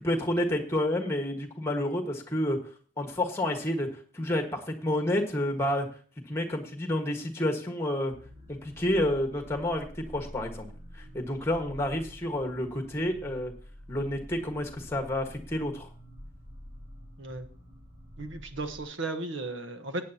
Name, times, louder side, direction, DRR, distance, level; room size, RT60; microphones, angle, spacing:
voice 1, 0.0-2.6 3.0-3.9 4.1-5.9 6.3-8.1 8.5-10.7 10.9-13.5 13.9-15.9, left 1 dB, 15° left, 4 dB, 1.5 m, -29 dB
sound 1, 8.0-18.9, equal, 30° right, 4.7 m, -48 dB
voice 2, 18.2-20.0, right 2 dB, 80° right, 8 dB, 1.2 m, -35 dB
16.0 x 9.1 x 2.9 m, 0.40 s
head